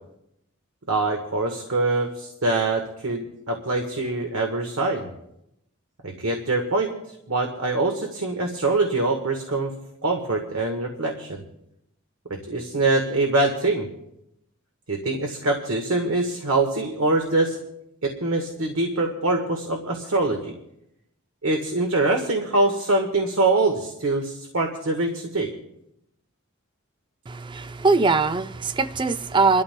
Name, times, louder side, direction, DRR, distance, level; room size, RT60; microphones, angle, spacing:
voice 1, 0.9-5.1 6.0-6.9 7.3-9.7 10.0-11.4 12.3-13.9 14.9-17.6 18.0-20.5 21.4-25.5, right 2 dB, 85° right, 1.4 m, -24 dB
voice 2, 27.3-29.6, right 4 dB, 25° right, 0.4 m, -21 dB
29.5 x 12.5 x 2.2 m
head